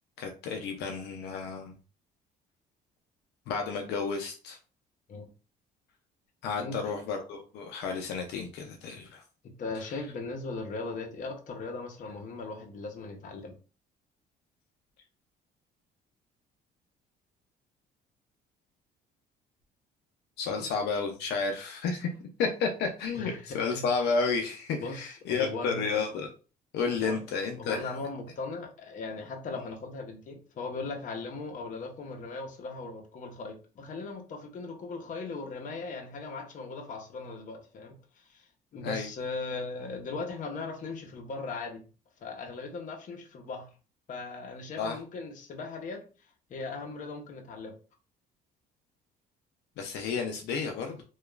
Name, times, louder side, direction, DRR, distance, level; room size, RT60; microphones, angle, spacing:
voice 1, 0.2-1.7 3.5-4.6 6.4-9.2 20.4-22.1 22.4-26.3 26.7-27.9 38.8-39.1 44.8-45.0 49.8-51.0, left 5 dB, 80° left, 0.5 m, -31 dB
voice 2, 6.6-6.9 9.6-13.6 20.5-20.7 23.1-23.9 24.8-25.9 26.9-27.2 27.6-38.0 38.3-41.8 42.2-43.7 44.1-46.0 46.5-47.7, left 3 dB, 50° left, 0.7 m, -38 dB
2.9 x 2.3 x 2.3 m
cardioid pair, 110°, 17 cm